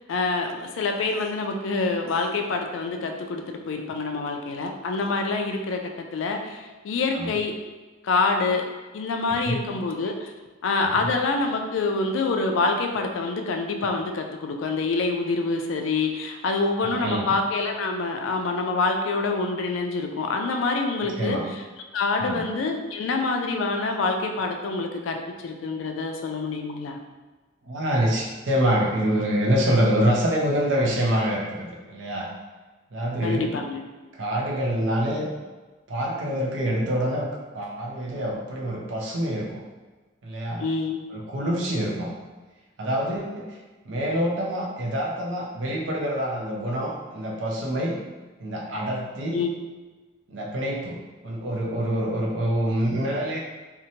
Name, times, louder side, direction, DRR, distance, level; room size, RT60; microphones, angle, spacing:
voice 1, 0.1-7.5 8.0-8.6 8.9-10.3 10.6-21.6 21.9-27.0 33.2-33.8 40.6-41.1 49.3-49.5, left 3 dB, 85° left, 4 dB, 0.4 m, -26 dB
voice 2, 9.3-9.6 10.8-11.0 16.8-17.3 21.2-21.4 22.2-22.4 27.7-32.3 32.9-33.5 34.1-35.3 35.9-37.3 37.5-39.5 40.2-40.6 41.1-42.1 42.8-43.6 43.8-48.0 48.4-49.4 50.3-51.0 51.2-53.4, equal, 70° right, -2 dB, 0.5 m, -26 dB
2.7 x 2.1 x 2.7 m, 1.2 s
head